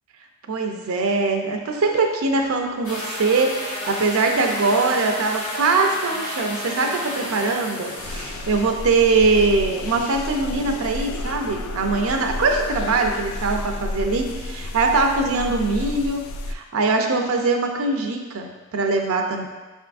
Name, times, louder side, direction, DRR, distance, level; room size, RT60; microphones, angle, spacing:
voice 1, 0.5-19.5, right 3 dB, 75° right, 3 dB, 0.5 m, -22 dB
sound 1, 2.8-8.6, left 1 dB, 85° left, 1.4 m, -31 dB
sound 2, 8.0-16.5, left 2 dB, 70° left, 0.3 m, -31 dB
5.8 x 3.5 x 2.5 m, 1.3 s
head